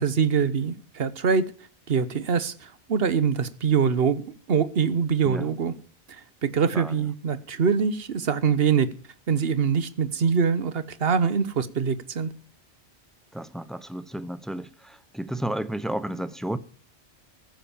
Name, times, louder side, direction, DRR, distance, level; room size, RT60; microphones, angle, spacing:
voice 1, 0.0-1.5 1.9-4.2 4.5-5.7 6.1-8.9 9.3-12.3, right 6 dB, 65° right, 1.2 m, -24 dB
voice 2, 13.3-16.6, right 1 dB, ahead, 0.6 m, -32 dB
15.0 x 9.1 x 7.2 m
omnidirectional pair, 1.1 m